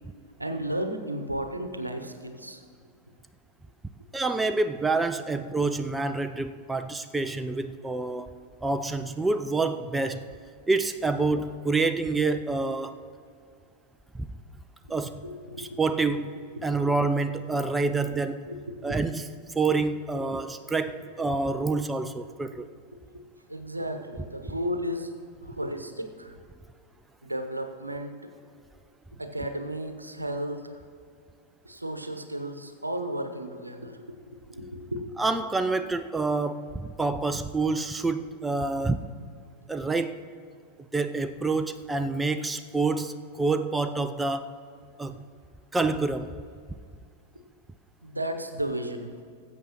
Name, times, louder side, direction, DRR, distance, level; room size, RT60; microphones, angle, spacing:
voice 1, 0.4-2.6 14.9-15.8 16.6-16.9 18.5-19.0 22.9-23.0 23.5-25.1 25.4-26.4 27.2-28.2 29.2-30.8 31.6-34.2 34.5-35.0 47.3-47.4 48.0-49.1, right 1 dB, 85° right, 6 dB, 0.9 m, -34 dB
voice 2, 4.1-10.3 10.7-13.0 14.2-14.3 14.9-15.2 15.6-18.5 18.8-19.2 19.5-22.7 35.2-39.1 39.7-40.2 40.9-44.6 45.0-45.2 45.7-46.3, right 3 dB, 10° right, 10 dB, 0.4 m, -27 dB
19.0 x 8.1 x 3.0 m, 2.3 s
figure-of-eight pair, 90°, 0 cm